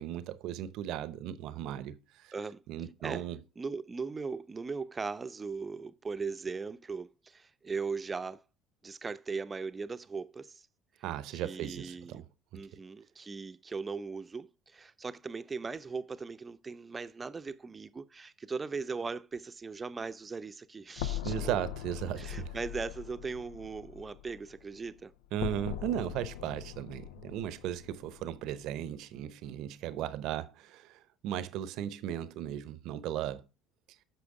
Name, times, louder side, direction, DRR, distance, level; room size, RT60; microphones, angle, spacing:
voice 1, 0.0-2.3 2.7-3.4 11.0-12.2 21.2-22.6 25.3-33.4, right 11 dB, 65° right, 0.7 m, -36 dB
voice 2, 2.3-2.6 3.0-3.2 3.6-8.4 8.8-10.6 11.3-12.2 12.5-21.6 22.2-25.1, right 4 dB, 30° right, 0.6 m, -39 dB
sound 1, 21.0-25.0 25.4-28.7, left 12 dB, 80° left, 0.4 m, -41 dB
8.5 x 6.1 x 4.9 m
hypercardioid pair, 60°, 0 cm